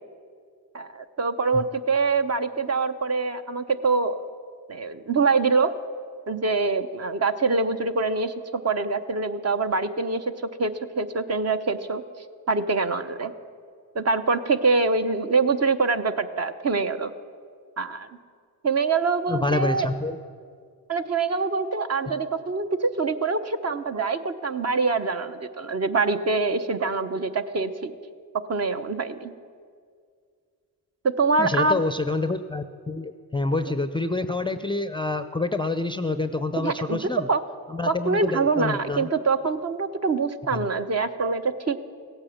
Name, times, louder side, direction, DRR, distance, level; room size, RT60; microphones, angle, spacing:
voice 1, 0.7-4.2 4.7-5.8 6.3-10.3 10.6-12.0 12.5-13.3 13.9-17.1 17.8-18.1 18.6-19.9 20.9-27.9 28.5-29.3 31.0-31.8 36.6-37.0 37.3-37.4 37.9-41.8, right 4 dB, 35° right, 9 dB, 0.9 m, -24 dB
voice 2, 19.3-20.2 22.1-22.2 31.4-37.3 37.7-39.1 40.5-40.7, left 3 dB, 10° left, 10 dB, 0.5 m, -27 dB
16.5 x 8.8 x 7.2 m, 2.1 s
supercardioid pair, 55°, 43 cm